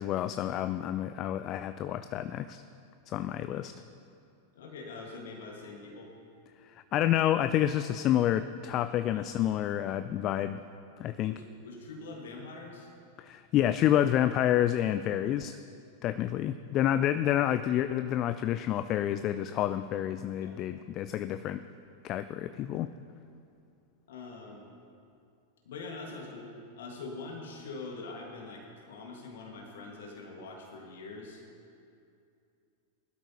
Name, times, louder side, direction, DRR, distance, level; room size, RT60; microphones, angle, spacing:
voice 1, 0.0-2.6 3.1-3.7 6.7-10.6 11.0-11.4 13.2-15.6 16.0-21.6 22.0-22.9, left 11 dB, 35° left, 11 dB, 0.4 m, -29 dB
voice 2, 4.6-6.1 9.0-9.3 11.3-12.9 20.4-20.6 24.1-24.6 25.7-31.4, left 3 dB, 60° left, 0 dB, 1.8 m, -44 dB
19.5 x 12.5 x 2.9 m, 2.5 s
figure-of-eight pair, 90°, 0 cm